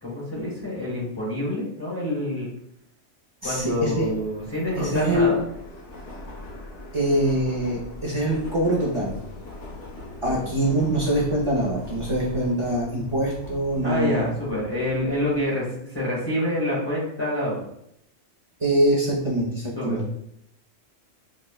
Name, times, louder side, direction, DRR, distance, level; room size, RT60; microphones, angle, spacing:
voice 1, 0.0-2.5 3.4-5.4 10.2-10.4 13.8-17.7 19.7-20.1, left 1 dB, 25° left, -8 dB, 0.9 m, -27 dB
Subway metro underground, 3.4-15.4, left 2 dB, 70° left, 1.2 m, -41 dB
voice 2, 3.4-4.1 4.8-5.4 6.9-9.3 10.2-14.3 18.6-20.1, right 1 dB, 40° right, -5 dB, 0.4 m, -24 dB
5.0 x 2.0 x 2.3 m, 0.75 s
omnidirectional pair, 1.3 m